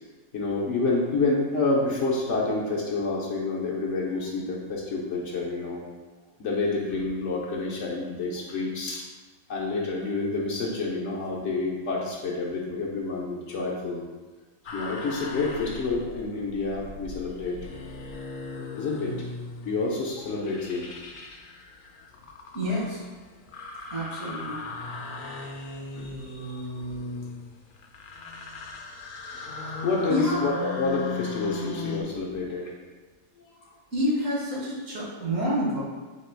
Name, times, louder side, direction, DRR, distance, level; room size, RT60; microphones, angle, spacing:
voice 1, 0.3-5.8 6.4-9.1 9.5-14.0 14.7-17.6 18.8-19.3 19.6-20.9 25.9-26.7 29.8-32.7, left 3 dB, 60° left, -3 dB, 1.0 m, -28 dB
sound 1, 14.7-32.0, left 3 dB, 75° left, 0.4 m, -38 dB
voice 2, 22.5-23.0 23.9-24.6 30.1-30.4 33.9-35.8, equal, 60° right, -7 dB, 1.7 m, -27 dB
4.1 x 2.9 x 4.5 m, 1.4 s
omnidirectional pair, 1.5 m